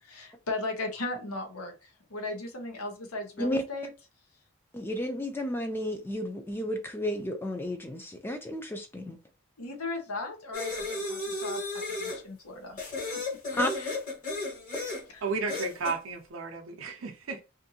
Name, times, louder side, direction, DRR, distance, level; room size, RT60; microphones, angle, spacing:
voice 1, 0.0-3.9 9.6-12.8 13.1-13.2 13.8-13.9 15.1-15.2, left 2 dB, 85° left, 0.8 m, -37 dB
voice 2, 4.7-9.2 13.5-13.7, left 1 dB, 10° left, 0.4 m, -32 dB
sound 1, 10.5-12.2 12.8-15.0 15.5-16.0, left 2 dB, 35° left, 1.3 m, -34 dB
voice 3, 15.2-17.4, right 4 dB, 65° right, 0.5 m, -33 dB
2.6 x 2.5 x 2.7 m
head